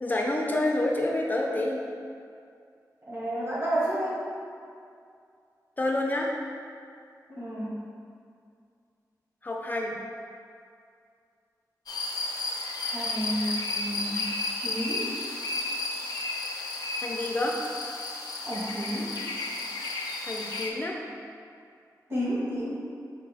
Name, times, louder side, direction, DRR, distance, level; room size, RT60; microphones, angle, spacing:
voice 1, 0.0-1.8 5.8-6.3 9.4-9.9 17.0-17.6 20.2-21.0, left 1 dB, 25° left, -1 dB, 0.5 m, -28 dB
voice 2, 3.1-4.2 7.3-7.8 12.8-14.3 14.6-15.1 18.4-19.1 22.1-22.7, equal, 40° right, -8 dB, 1.4 m, -31 dB
sound 1, 11.9-20.7, left 2 dB, 75° left, 0.5 m, -33 dB
4.8 x 2.2 x 4.8 m, 2.4 s
wide cardioid pair, 125°, 7 cm